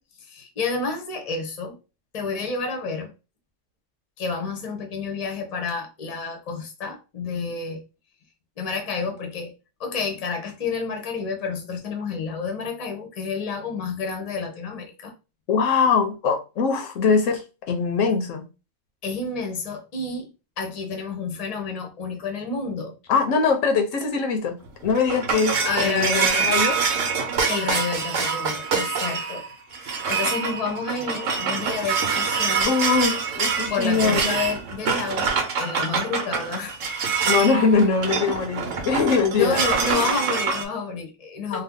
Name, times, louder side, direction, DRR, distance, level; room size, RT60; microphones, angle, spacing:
voice 1, 0.2-1.8 2.1-3.1 4.2-7.8 8.6-9.5 9.8-15.1 19.0-20.3 20.6-22.9 25.6-26.5 27.5-29.4 29.7-32.8 33.7-36.9 37.6-37.7 39.3-41.6, left 4 dB, 35° left, 0.8 m, -30 dB
voice 2, 15.5-18.5 23.1-26.8 28.2-28.4 32.6-34.3 37.2-39.7 39.9-40.0 41.5-41.6, left 5 dB, 80° left, 1.1 m, -22 dB
sound 1, 24.7-40.6, right 5 dB, 80° right, 1.0 m, -25 dB
2.7 x 2.4 x 3.6 m
omnidirectional pair, 1.3 m